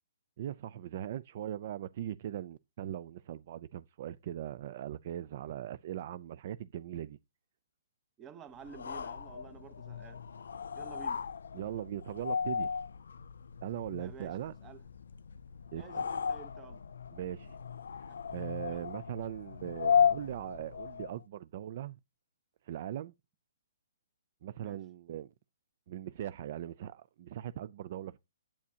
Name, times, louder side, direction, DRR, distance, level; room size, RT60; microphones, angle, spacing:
voice 1, 0.4-7.2 11.5-12.7 13.6-14.5 15.7-16.0 17.1-17.6 17.9-22.0 22.6-23.1 24.4-25.3 25.9-28.2, right 11 dB, 45° right, 0.4 m, -40 dB
voice 2, 8.2-10.2 10.7-11.2 14.0-14.8 15.8-16.8 18.1-18.2 18.6-18.9 24.6-24.8, right 7 dB, 15° right, 1.0 m, -52 dB
sound 1, 8.6-21.2, left 7 dB, 80° left, 0.4 m, -35 dB
8.5 x 8.4 x 2.8 m
hypercardioid pair, 160°, 0 cm